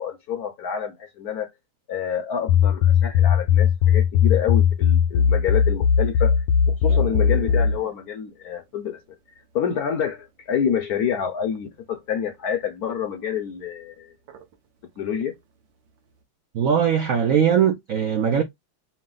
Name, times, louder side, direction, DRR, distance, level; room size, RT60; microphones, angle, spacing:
voice 1, 0.0-1.5 1.9-6.4 6.7-9.0 9.5-14.1 15.0-15.4, left 8 dB, 70° left, 0.9 m, -28 dB
sound 1, 2.5-7.8, left 7 dB, 85° left, 1.4 m, -18 dB
sound 2, 4.4-10.9 11.2-14.7 15.0-16.2, right 8 dB, 70° right, 1.7 m, -42 dB
voice 2, 16.5-18.4, right 8 dB, 85° right, 0.7 m, -20 dB
5.0 x 2.0 x 3.7 m
omnidirectional pair, 2.2 m